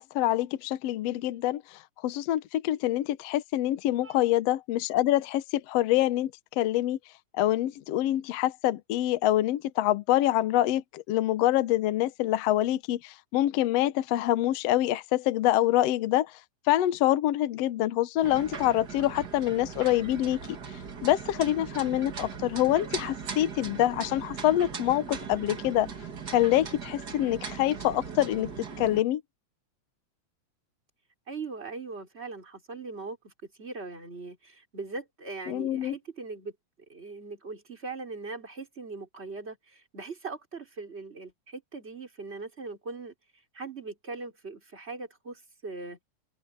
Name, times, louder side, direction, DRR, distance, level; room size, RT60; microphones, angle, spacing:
voice 1, 0.0-1.6 2.0-6.3 6.6-7.0 7.3-16.3 16.7-20.4 21.0-25.9 26.3-28.5 28.8-29.2 35.5-35.9, left 14 dB, 70° left, 1.7 m, -26 dB
sound 1, 18.2-29.0, right 6 dB, 40° right, 2.0 m, -39 dB
voice 2, 31.3-36.6 36.9-46.0, right 3 dB, 20° right, 4.0 m, -40 dB
omnidirectional pair, 3.5 m